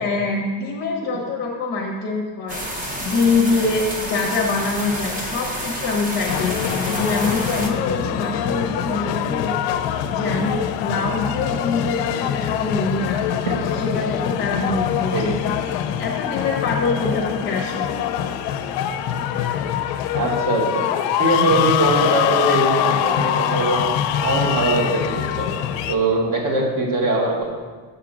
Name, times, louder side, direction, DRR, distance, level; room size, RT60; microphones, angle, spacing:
voice 1, 0.0-17.9, left 3 dB, 25° left, -1 dB, 0.7 m, -25 dB
sound 1, 2.5-7.7, equal, 20° right, 0.5 m, -29 dB
sound 2, 6.3-25.9, left 10 dB, 70° left, 0.5 m, -24 dB
voice 2, 20.1-20.9 21.2-23.9 24.2-25.5 25.9-27.5, right 2 dB, 45° right, -1 dB, 1.4 m, -21 dB
6.5 x 3.7 x 6.0 m, 1.5 s
cardioid pair, 175°, 45 cm